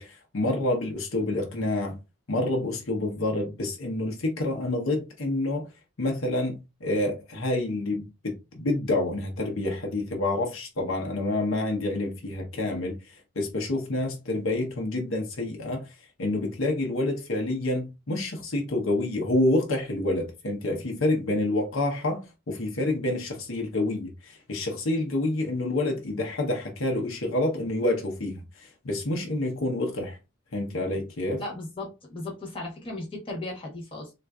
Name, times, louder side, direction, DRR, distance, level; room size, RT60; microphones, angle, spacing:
voice 1, 0.0-2.0 2.3-5.7 6.0-30.2 30.5-31.4, left 2 dB, 70° left, 0.8 m, -28 dB
voice 2, 31.4-34.1, left 2 dB, 25° left, 1.1 m, -36 dB
3.8 x 2.5 x 2.3 m
head